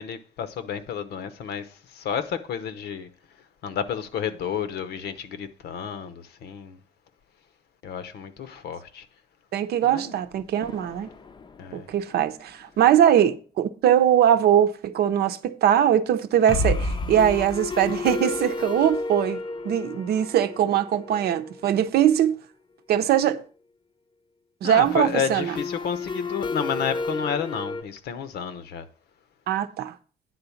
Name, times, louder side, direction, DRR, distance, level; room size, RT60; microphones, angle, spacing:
voice 1, 0.0-3.1 3.6-6.8 7.8-9.1 9.8-10.1 11.6-11.9 24.6-28.9, left 7 dB, 75° left, 0.9 m, -31 dB
voice 2, 9.5-11.1 11.7-19.4 19.6-22.4 22.9-23.4 24.6-25.5 29.5-29.9, right 10 dB, 70° right, 0.7 m, -21 dB
sound 1, 10.6-11.8 12.1-12.2 12.5-12.6 16.5-22.1 24.9-27.8, left 3 dB, 25° left, 0.6 m, -31 dB
9.7 x 3.9 x 7.0 m
cardioid pair, 135°, 17 cm